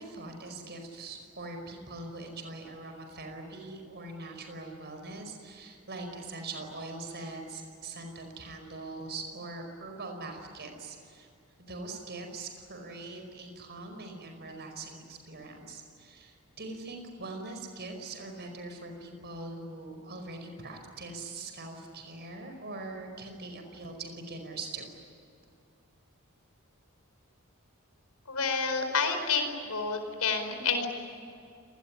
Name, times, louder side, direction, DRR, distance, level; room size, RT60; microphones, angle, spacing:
voice 1, 0.0-11.3 11.6-24.9, right 2 dB, 50° right, 5 dB, 5.1 m, -42 dB
voice 2, 28.3-30.9, left 5 dB, 85° left, 6 dB, 4.7 m, -29 dB
29.0 x 20.0 x 10.0 m, 2.5 s
head